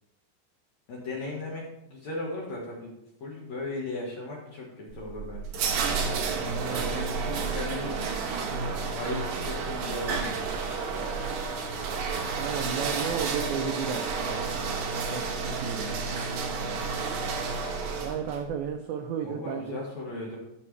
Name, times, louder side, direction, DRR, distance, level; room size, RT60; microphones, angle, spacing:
voice 1, 0.9-2.9 3.2-5.6 6.7-8.0 8.9-11.2 15.6-16.0 16.6-16.9 19.2-20.4, left 2 dB, 60° left, -3 dB, 1.9 m, -37 dB
sound 1, 4.9-18.4, right 4 dB, 65° right, 2.0 m, -31 dB
voice 2, 6.3-7.1 12.4-14.8 15.0-15.9 17.9-19.8, right 7 dB, 90° right, 5 dB, 2.1 m, -34 dB
14.5 x 6.0 x 3.2 m, 0.87 s
omnidirectional pair, 5.0 m